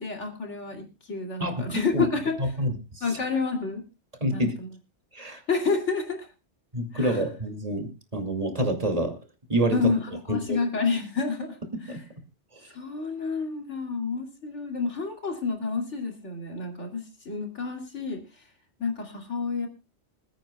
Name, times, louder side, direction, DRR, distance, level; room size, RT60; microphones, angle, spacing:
voice 1, 0.0-2.4 3.0-3.8 4.3-4.7 5.5-6.3 6.9-7.2 9.7-11.6 11.8-12.0 12.7-18.2 18.8-19.7, left 4 dB, 85° left, 3 dB, 2.9 m, -29 dB
voice 2, 1.4-2.1 2.4-3.2 4.2-4.5 5.1-5.4 6.7-9.1 9.5-9.9 10.3-10.6 11.9-12.0, right 1 dB, 30° right, 5 dB, 2.3 m, -27 dB
26.5 x 9.2 x 2.2 m, 0.28 s
omnidirectional pair, 1.2 m